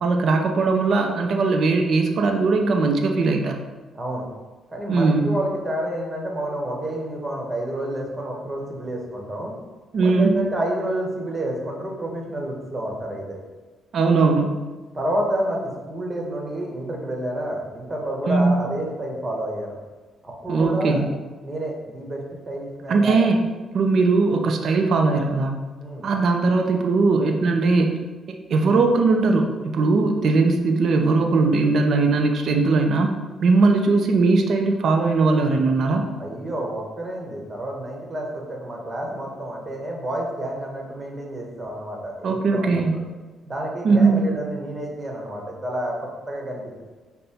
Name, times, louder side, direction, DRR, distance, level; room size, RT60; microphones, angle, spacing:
voice 1, 0.0-3.6 4.9-5.4 9.9-10.4 13.9-14.6 18.3-18.6 20.5-21.1 22.9-23.4 23.7-25.6 26.0-27.9 28.5-33.1 33.4-36.1 42.2-43.0 43.8-44.3, right 3 dB, 60° right, 3 dB, 0.5 m, -19 dB
voice 2, 3.9-4.3 4.7-9.5 10.0-13.4 14.9-19.8 20.2-21.0 21.4-22.2 22.5-23.3 25.8-26.1 36.2-43.0 43.4-46.8, right 1 dB, 25° right, -1 dB, 1.1 m, -29 dB
5.4 x 2.2 x 4.3 m, 1.3 s
cardioid pair, 90°, 0 cm